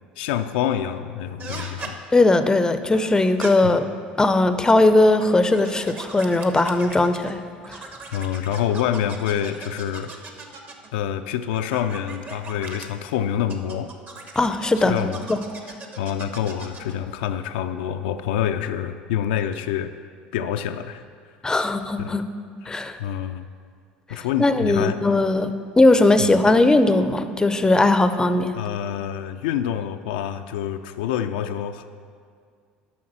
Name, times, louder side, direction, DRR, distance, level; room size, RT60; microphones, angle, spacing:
voice 1, 0.2-2.0 3.6-3.7 8.1-10.1 10.9-13.9 14.8-15.3 15.6-19.9 20.3-21.0 22.0-22.2 23.0-23.5 24.1-25.0 26.2-26.3 28.5-31.8, left 10 dB, 70° left, 7 dB, 0.4 m, -27 dB
sound 1, 1.4-1.9 2.9-3.5 4.5-7.3 7.6-10.9 11.5-12.9 13.5-17.0, right 3 dB, 35° right, 1.1 m, -39 dB
voice 2, 2.1-3.8 4.2-7.4 14.4-15.4 21.4-22.3 22.7-23.0 24.4-28.5, left 2 dB, 15° left, 11 dB, 0.5 m, -19 dB
8.5 x 5.9 x 6.0 m, 2.1 s
hypercardioid pair, 65°, 5 cm